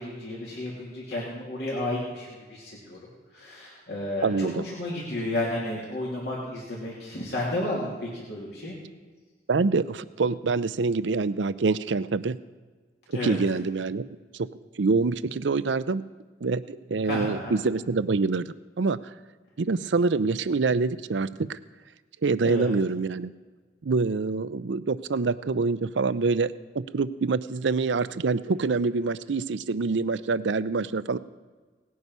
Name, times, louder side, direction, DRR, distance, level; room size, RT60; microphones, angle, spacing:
voice 1, 0.0-3.0 3.3-8.7 13.1-13.4 17.0-17.5 22.4-22.7, left 1 dB, 60° left, -5 dB, 2.8 m, -32 dB
voice 2, 4.2-4.6 9.5-12.4 13.1-14.0 14.3-14.5 14.8-16.0 16.4-19.0 19.6-21.6 22.2-23.3 23.8-31.2, right 4 dB, 90° right, 15 dB, 0.6 m, -26 dB
18.5 x 9.5 x 5.5 m, 1.4 s
head